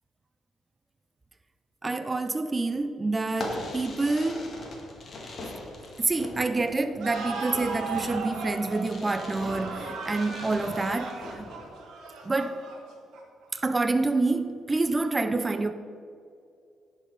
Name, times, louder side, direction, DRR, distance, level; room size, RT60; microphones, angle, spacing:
voice 1, 1.8-4.5 6.0-11.5 12.2-12.7 13.5-15.7, right 3 dB, 25° right, 0.4 m, -27 dB
Fireworks, 3.3-11.7, left 2 dB, 45° left, 1.9 m, -41 dB
sound 1, 7.0-13.4, right 4 dB, 80° right, 1.4 m, -37 dB
10.5 x 5.4 x 4.9 m
cardioid pair, 90°, 0 cm